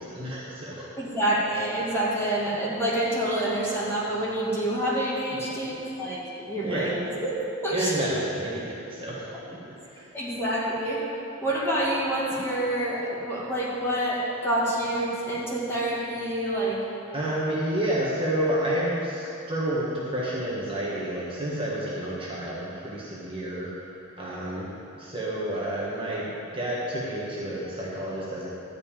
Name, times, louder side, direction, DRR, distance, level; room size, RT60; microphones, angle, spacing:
voice 1, 0.0-0.9 5.3-5.6 6.6-6.9 7.7-10.1 17.1-23.7 24.2-24.7 25.0-28.6, right 1 dB, 25° right, -6 dB, 1.4 m, -30 dB
voice 2, 1.0-7.3 7.6-8.1 10.1-11.0 11.4-16.8, right 1 dB, 10° left, -7 dB, 2.1 m, -27 dB
12.0 x 5.4 x 8.9 m, 2.9 s
head